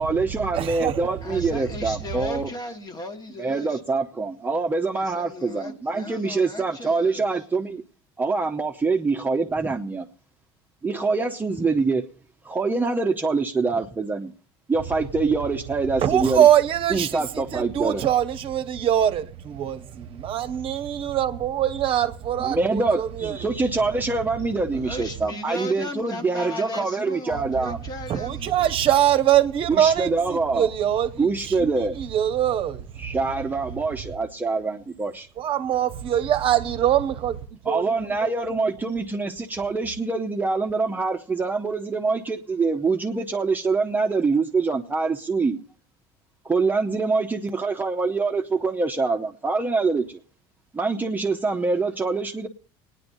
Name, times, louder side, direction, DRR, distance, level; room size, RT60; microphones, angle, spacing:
voice 1, 0.0-2.5 3.4-7.8 8.2-10.0 10.8-12.0 12.4-14.3 14.7-16.5 16.9-18.0 22.4-27.8 29.7-30.7 31.2-32.0 33.0-35.3 37.7-45.6 46.4-50.2 50.7-52.5, right 3 dB, 15° right, 0.7 m, -25 dB
voice 2, 0.5-1.2 16.0-19.3 19.6-19.8 20.3-23.4 23.9-24.0 28.1-32.8 35.4-37.4 37.7-37.9 38.5-38.6, right 10 dB, 45° right, 0.8 m, -23 dB
voice 3, 1.2-3.8 4.9-7.4 24.7-28.8, left 2 dB, 30° left, 1.4 m, -36 dB
24.0 x 9.8 x 2.7 m
supercardioid pair, 100°, 12 cm